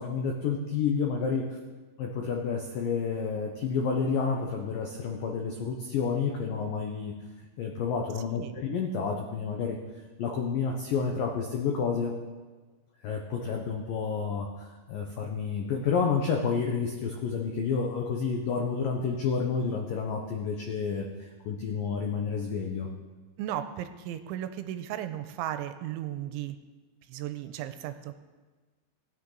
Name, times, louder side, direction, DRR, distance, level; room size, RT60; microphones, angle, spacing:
voice 1, 0.0-1.4 2.0-7.1 7.6-9.8 10.2-12.1 13.0-22.9, left 5 dB, 85° left, 1 dB, 1.9 m, -30 dB
voice 2, 23.4-26.6 27.1-28.1, right 11 dB, 85° right, 9 dB, 3.0 m, -35 dB
19.0 x 9.5 x 3.9 m, 1.3 s
omnidirectional pair, 5.4 m